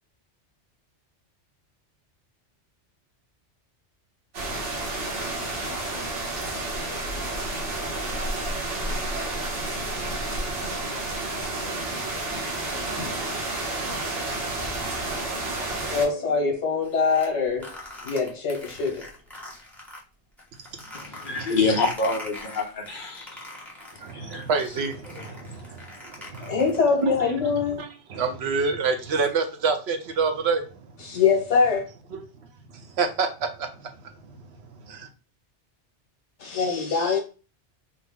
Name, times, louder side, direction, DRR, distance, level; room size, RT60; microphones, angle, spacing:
sound 1, 4.3-16.1, right 2 dB, 85° right, 1.4 m, -30 dB
voice 1, 15.9-17.7 18.0-19.0 26.4-27.8 31.0-31.9 36.4-37.2, left 5 dB, 75° left, 1.3 m, -23 dB
sound 2, 16.8-20.0 20.4-27.0, left 1 dB, ahead, 0.8 m, -42 dB
voice 2, 20.9-23.4 24.1-24.5 25.2-25.3, left 3 dB, 55° left, 0.7 m, -27 dB
voice 3, 24.0-26.6 27.0-27.1 27.8-30.6 32.1-32.2 32.7-33.9 34.8-35.1, right 4 dB, 65° right, 0.8 m, -27 dB
3.7 x 2.0 x 3.4 m
omnidirectional pair, 1.2 m